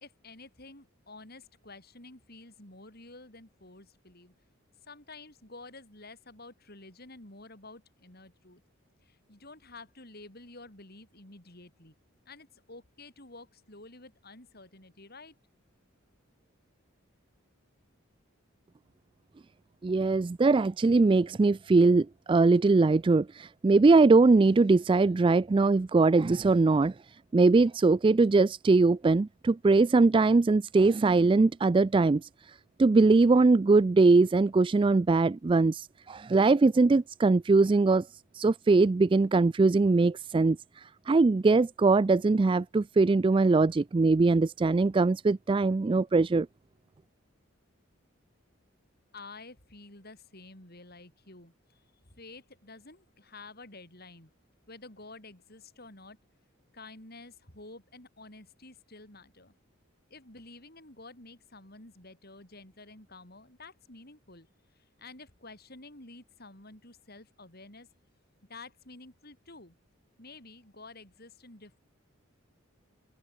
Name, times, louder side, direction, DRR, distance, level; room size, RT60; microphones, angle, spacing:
voice 1, 0.0-4.3 4.9-8.6 9.0-12.0 12.3-15.3 49.1-54.3 54.7-56.2 56.7-59.5 60.1-64.5 65.0-67.9 68.5-69.8 70.2-71.8, left 3 dB, 50° left, 7.0 m, -50 dB
voice 2, 19.8-26.9 27.3-46.5, right 3 dB, 25° right, 0.3 m, -22 dB
head